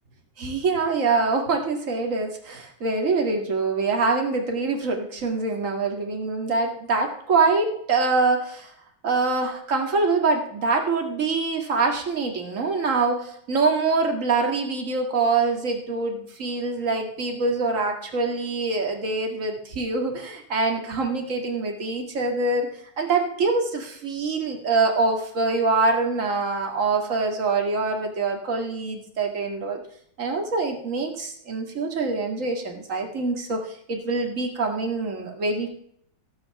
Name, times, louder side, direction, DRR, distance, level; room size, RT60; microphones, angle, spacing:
voice 1, 0.4-8.7 9.0-22.7 23.0-29.8 30.2-35.7, right 3 dB, 40° right, 2 dB, 2.3 m, -24 dB
16.5 x 5.7 x 7.0 m, 0.67 s
omnidirectional pair, 2.2 m